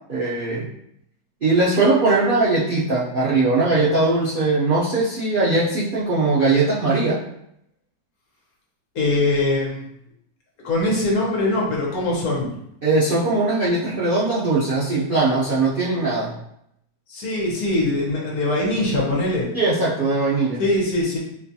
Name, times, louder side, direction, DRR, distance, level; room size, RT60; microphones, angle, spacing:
voice 1, 0.1-0.6 1.4-7.2 12.8-16.4 19.5-20.6, right 3 dB, 85° right, -8 dB, 0.4 m, -20 dB
voice 2, 8.9-9.8 10.6-12.6 17.1-19.5 20.6-21.2, left 2 dB, 60° left, -3 dB, 1.3 m, -22 dB
4.4 x 2.3 x 2.7 m, 0.76 s
omnidirectional pair, 1.9 m